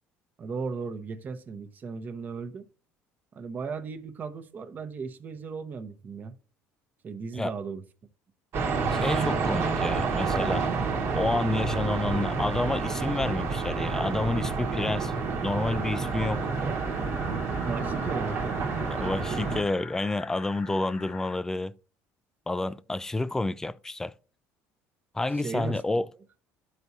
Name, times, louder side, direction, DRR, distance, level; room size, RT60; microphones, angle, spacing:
voice 1, 0.4-2.6 3.3-6.3 7.0-7.8 16.5-17.1 17.4-19.1 25.3-25.8, right 5 dB, 30° right, 0.8 m, -37 dB
sound 1, 8.5-19.6, right 4 dB, 50° right, 1.2 m, -29 dB
voice 2, 8.9-10.7 11.1-15.1 15.4-16.5 18.9-21.7 22.5-24.1 25.1-26.1, left 2 dB, 10° left, 0.3 m, -29 dB
sound 2, 11.5-21.4, left 5 dB, 35° left, 0.9 m, -46 dB
12.5 x 4.7 x 2.7 m
cardioid pair, 130°, 5 cm